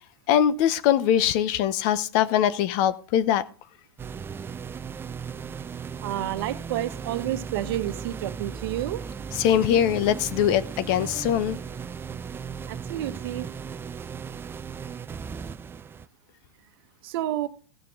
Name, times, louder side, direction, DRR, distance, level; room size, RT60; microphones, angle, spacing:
voice 1, 0.3-3.4 9.3-11.6, left 10 dB, 55° left, 0.9 m, -22 dB
sound 1, 4.0-16.1, right 6 dB, 15° right, 0.4 m, -36 dB
voice 2, 6.0-9.0 12.7-13.5 17.0-17.5, right 13 dB, 65° right, 1.0 m, -30 dB
15.5 x 6.7 x 3.7 m
hypercardioid pair, 105°, 13 cm